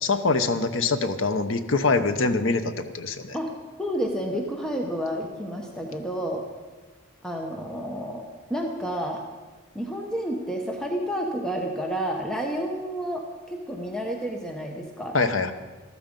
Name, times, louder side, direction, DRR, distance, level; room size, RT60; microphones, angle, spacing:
voice 1, 0.0-3.4 15.1-15.5, left 3 dB, 70° left, 10 dB, 0.9 m, -24 dB
voice 2, 3.8-6.4 7.2-9.2 9.7-15.2, equal, 5° left, 1 dB, 1.0 m, -30 dB
13.5 x 13.0 x 5.3 m, 1.3 s
head